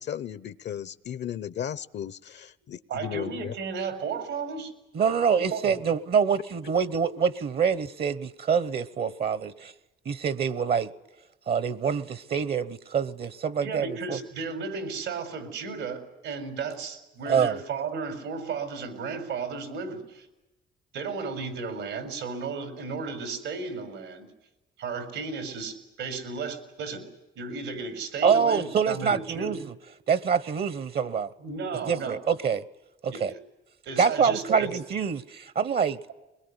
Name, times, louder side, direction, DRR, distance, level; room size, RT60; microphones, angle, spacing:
voice 1, 0.0-3.5, left 9 dB, 60° left, 0.8 m, -35 dB
voice 2, 2.9-4.7 5.3-5.8 13.6-20.3 20.9-24.3 24.8-27.0 27.4-29.6 31.4-32.2 33.1-33.4 33.8-34.7, right 5 dB, 90° right, 4.7 m, -34 dB
voice 3, 4.9-9.7 10.0-10.9 11.5-14.2 17.3-17.6 28.2-29.6 30.1-31.3 31.9-32.6 33.0-33.3 34.0-36.0, right 6 dB, 50° right, 1.0 m, -25 dB
22.5 x 21.5 x 9.8 m
cardioid pair, 90°, 20 cm